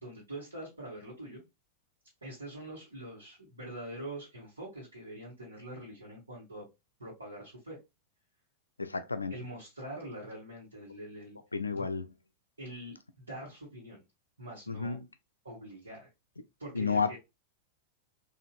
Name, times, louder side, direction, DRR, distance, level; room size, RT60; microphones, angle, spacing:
voice 1, 0.0-1.4 2.2-6.7 7.0-7.8 9.3-11.4 11.7-11.9 12.6-14.0 14.4-15.0 15.4-16.1 16.6-17.2, right 1 dB, 75° right, 1.4 m, -44 dB
voice 2, 8.8-9.4 11.5-12.1 14.7-15.0 16.7-17.2, left 5 dB, 80° left, 0.3 m, -31 dB
3.9 x 2.5 x 2.4 m
figure-of-eight pair, 90°, 0 cm